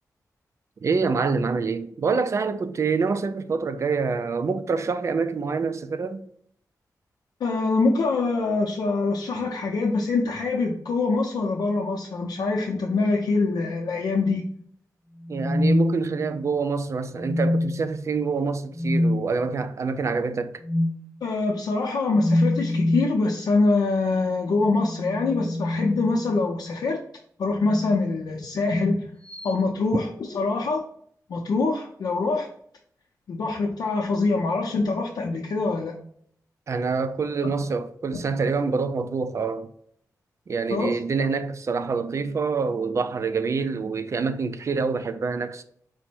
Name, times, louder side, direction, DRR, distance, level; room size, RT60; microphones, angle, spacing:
voice 1, 0.8-6.3 15.3-20.6 36.7-39.7 40.5-45.6, right 4 dB, 50° right, 0.4 m, -26 dB
voice 2, 7.4-14.6 21.2-27.0 27.4-29.1 29.4-30.8 31.3-32.5 33.3-35.9 40.7-40.9, left 3 dB, 85° left, 0.5 m, -24 dB
sound 1, 15.2-16.5 17.2-17.9 18.7-19.2 20.6-21.0 22.1-23.2 24.7-26.5 27.6-28.0 29.3-29.5, left 1 dB, 15° left, 0.6 m, -25 dB
5.0 x 2.1 x 4.4 m
wide cardioid pair, 95°, 7 cm